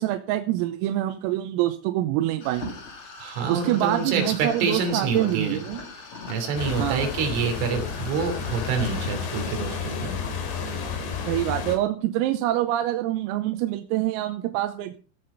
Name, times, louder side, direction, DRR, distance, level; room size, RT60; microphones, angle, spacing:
voice 1, 0.0-2.8 3.5-5.8 6.8-7.1 11.3-15.0, right 14 dB, 90° right, 7 dB, 3.7 m, -25 dB
sound 1, 2.4-9.6, left 4 dB, 35° left, 2.4 m, -41 dB
voice 2, 3.2-5.6 6.3-10.2, right 5 dB, 70° right, 5 dB, 5.5 m, -27 dB
sound 2, 6.6-11.8, left 6 dB, 60° left, 4.6 m, -31 dB
17.0 x 7.8 x 5.5 m, 0.38 s
omnidirectional pair, 6.0 m